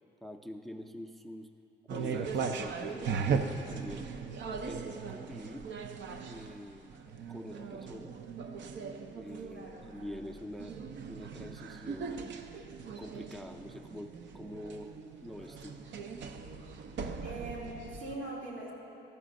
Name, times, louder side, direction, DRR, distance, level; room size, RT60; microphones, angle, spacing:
voice 1, 0.2-1.5 1.9-4.1 4.5-5.7 6.3-6.9 7.3-8.2 9.1-10.7 11.1-12.4 13.0-14.9 15.2-15.8, left 1 dB, ahead, 5 dB, 0.5 m, -45 dB
sound 1, 1.9-18.2, right 5 dB, 65° right, 0.6 m, -39 dB
voice 2, 9.5-9.9 17.2-18.7, right 2 dB, 85° right, -4 dB, 2.1 m, -41 dB
12.5 x 5.0 x 6.4 m, 3.0 s
cardioid pair, 90°, 20 cm